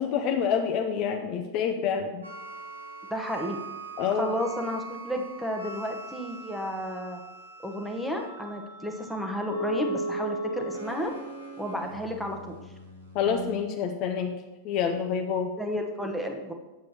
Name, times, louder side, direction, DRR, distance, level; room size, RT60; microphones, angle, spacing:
voice 1, 0.0-2.3 4.0-4.4 13.1-14.3 14.6-15.5, left 7 dB, 40° left, 5 dB, 0.6 m, -27 dB
sound 1, 2.2-13.6, right 2 dB, 90° right, 1.7 m, -38 dB
voice 2, 3.1-3.6 4.1-7.2 7.6-11.1 11.6-12.6 15.6-16.5, equal, ahead, 2 dB, 1.0 m, -32 dB
8.5 x 7.6 x 2.9 m, 1.1 s
figure-of-eight pair, 90°, 0 cm